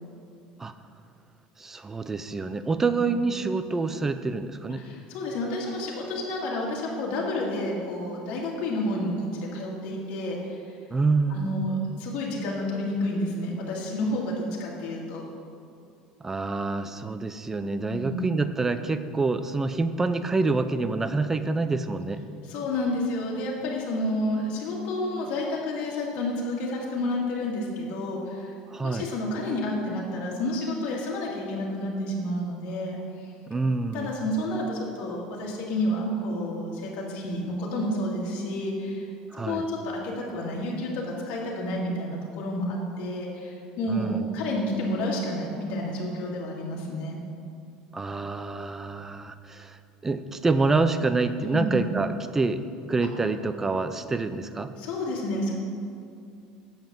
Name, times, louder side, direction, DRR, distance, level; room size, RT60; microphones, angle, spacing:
voice 1, 1.6-4.8 10.9-11.6 16.2-22.2 28.7-29.1 33.5-34.1 39.3-39.7 43.9-44.3 47.9-52.6 52.9-54.7, right 3 dB, 15° right, 10 dB, 0.5 m, -27 dB
voice 2, 4.8-10.8 11.3-15.2 17.9-18.3 22.4-28.5 28.8-33.3 33.9-39.1 39.4-47.2 51.5-51.7 54.8-55.5, left 1 dB, 65° left, -4 dB, 2.1 m, -30 dB
7.8 x 5.3 x 7.4 m, 2.4 s
supercardioid pair, 125°, 3 cm